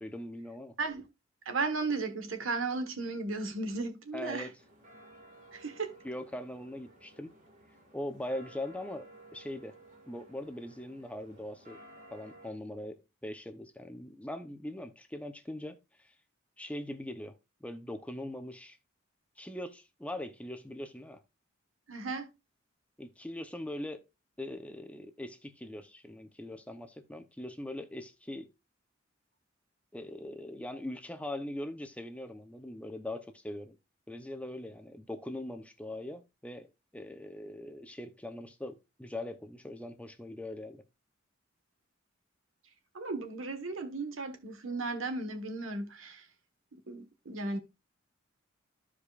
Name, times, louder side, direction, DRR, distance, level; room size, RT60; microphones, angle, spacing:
voice 1, 0.0-0.7 4.1-4.5 6.0-7.3 7.9-9.7 10.1-11.8 12.1-15.8 16.6-17.4 17.6-18.8 19.4-21.2 23.0-24.0 24.4-28.5 29.9-33.8 34.1-36.7 36.9-40.8, left 1 dB, 5° left, 0.8 m, -41 dB
voice 2, 1.4-4.5 5.5-6.0 21.9-22.3 42.9-46.3 46.7-47.6, right 3 dB, 85° right, 1.4 m, -35 dB
sound 1, 4.6-12.5, right 1 dB, 40° right, 1.9 m, -55 dB
14.0 x 5.0 x 2.4 m
head